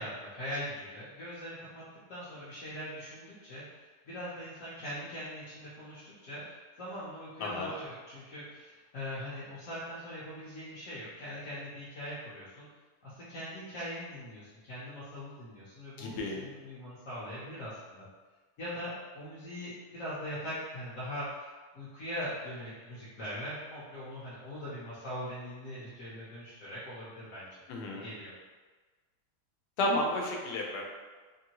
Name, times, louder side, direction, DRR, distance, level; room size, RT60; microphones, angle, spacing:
voice 1, 0.0-12.7 13.0-18.1 18.6-27.6 28.0-28.3, equal, 60° left, -10 dB, 1.0 m, -41 dB
voice 2, 7.4-7.7 16.0-16.4 27.7-28.1 29.8-30.8, left 1 dB, 90° left, 0 dB, 1.2 m, -32 dB
2.9 x 2.6 x 2.8 m, 1.3 s
omnidirectional pair, 1.7 m